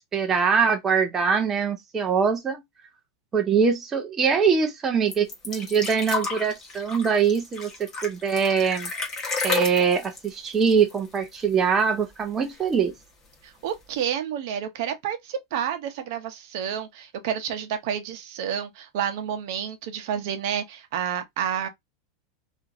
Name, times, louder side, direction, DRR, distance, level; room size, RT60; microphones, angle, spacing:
voice 1, 0.1-2.6 3.3-8.9 9.4-12.9, right 6 dB, 15° right, 0.5 m, -23 dB
sound 1, 5.1-11.5 11.8-11.9 12.2-12.9 13.7-13.8, left 4 dB, 20° left, 0.9 m, -32 dB
voice 2, 13.4-21.7, right 9 dB, 60° right, 0.7 m, -30 dB
2.8 x 2.5 x 2.4 m
supercardioid pair, 150°, 2 cm